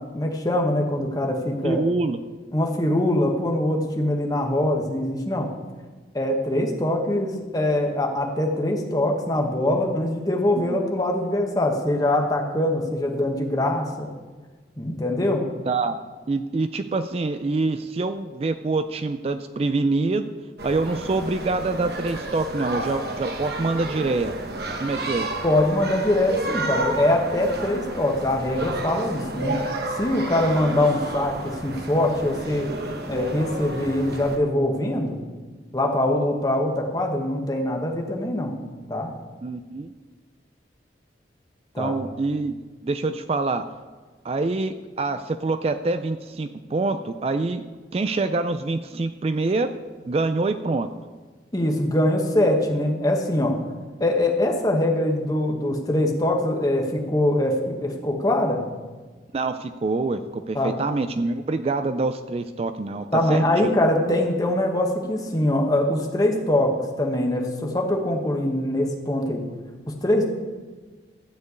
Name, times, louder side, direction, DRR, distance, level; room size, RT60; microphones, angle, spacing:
voice 1, 0.0-1.8 2.5-5.5 6.1-14.1 14.8-15.5 25.4-29.6 29.9-35.2 35.7-38.6 38.9-39.1 41.7-41.9 51.5-53.5 54.0-58.6 60.5-60.7 63.1-69.4 70.0-70.3, left 1 dB, 20° left, 2 dB, 1.3 m, -23 dB
voice 2, 1.6-2.2 10.5-10.8 15.6-16.0 16.3-20.3 20.6-24.3 24.8-25.3 39.4-39.9 41.8-43.6 44.2-47.7 47.9-49.8 50.1-50.9 59.3-63.7, right 3 dB, 35° right, 10 dB, 0.4 m, -25 dB
sound 1, 20.6-34.4, right 2 dB, 60° right, 1.1 m, -31 dB
12.5 x 4.5 x 8.1 m, 1.4 s
head